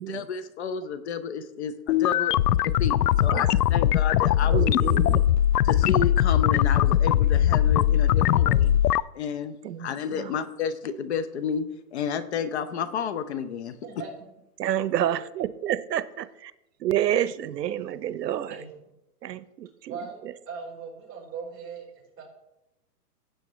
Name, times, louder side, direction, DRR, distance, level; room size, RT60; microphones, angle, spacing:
voice 1, 0.1-5.3 5.6-8.7 9.1-14.0, left 7 dB, 45° left, 0.8 m, -31 dB
sound 1, 1.9-9.0, left 12 dB, 85° left, 0.5 m, -21 dB
voice 2, 4.5-5.3 9.6-10.3 14.6-16.5 16.8-18.5 19.2-19.9, right 11 dB, 90° right, 0.8 m, -29 dB
voice 3, 19.9-20.2 20.5-22.2, right 5 dB, 25° right, 4.4 m, -39 dB
15.5 x 8.5 x 3.1 m
hypercardioid pair, 155°, 47 cm